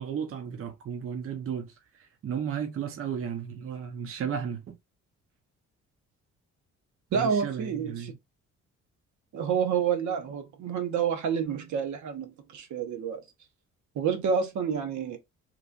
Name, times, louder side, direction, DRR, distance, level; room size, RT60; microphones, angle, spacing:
voice 1, 0.0-1.7 2.2-4.8 7.1-8.2, right 7 dB, 45° right, 0.7 m, -34 dB
voice 2, 7.1-8.1 9.3-13.2 14.0-15.2, right 7 dB, 70° right, 0.9 m, -29 dB
3.1 x 2.3 x 3.7 m
cardioid pair, 90°, 30 cm